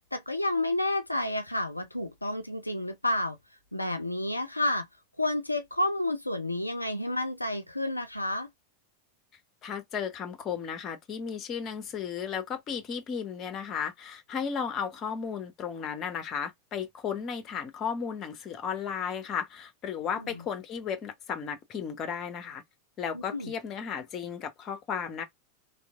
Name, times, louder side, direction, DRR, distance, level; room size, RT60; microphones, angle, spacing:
voice 1, 0.1-3.4 3.7-4.9 5.2-8.5 20.2-20.4 23.1-23.5, left 1 dB, 85° left, 0.4 m, -30 dB
voice 2, 9.6-22.6 23.0-25.2, left 7 dB, 30° left, 0.9 m, -34 dB
3.1 x 2.6 x 2.4 m
figure-of-eight pair, 90°, 0 cm